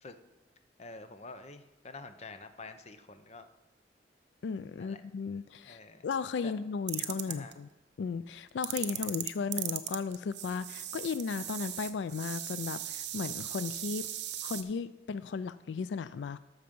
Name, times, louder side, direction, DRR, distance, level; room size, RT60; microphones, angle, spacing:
voice 1, 0.8-3.5 4.8-5.0 5.6-6.1 6.4-6.5 7.3-7.5 8.8-9.1, left 3 dB, 40° left, 9 dB, 0.7 m, -47 dB
voice 2, 4.4-7.7 8.0-14.1 14.4-16.4, left 5 dB, 85° left, 15 dB, 0.4 m, -35 dB
sound 1, 6.9-7.5 8.6-14.6, right 12 dB, 75° right, 0.8 m, -38 dB
12.5 x 6.7 x 5.3 m, 1.0 s
head